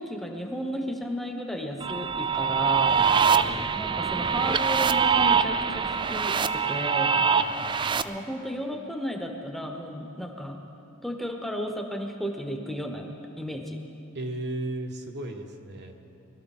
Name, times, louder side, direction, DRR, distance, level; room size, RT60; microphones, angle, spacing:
voice 1, 0.0-3.0 3.6-7.1 8.0-10.6 11.0-13.1 13.4-13.8, equal, ahead, 2 dB, 1.1 m, -33 dB
sound 1, 1.8-8.0, right 6 dB, 20° right, 0.3 m, -24 dB
voice 2, 2.9-3.6 7.1-8.0 14.1-15.9, right 2 dB, 50° right, 3 dB, 1.3 m, -36 dB
21.5 x 13.0 x 4.3 m, 2.9 s
head